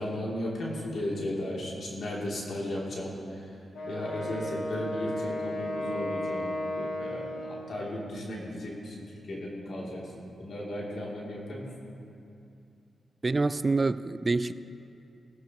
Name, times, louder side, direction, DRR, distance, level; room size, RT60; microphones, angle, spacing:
voice 1, 0.0-3.5 3.9-11.7, left 1 dB, 65° left, -4 dB, 2.9 m, -35 dB
Wind instrument woodwind instrument, 3.7-7.7, left 1 dB, 85° left, 2.8 m, -34 dB
voice 2, 13.2-14.5, right 3 dB, 30° right, 14 dB, 0.4 m, -26 dB
17.0 x 16.0 x 3.0 m, 2.6 s
cardioid pair, 85°, 0 cm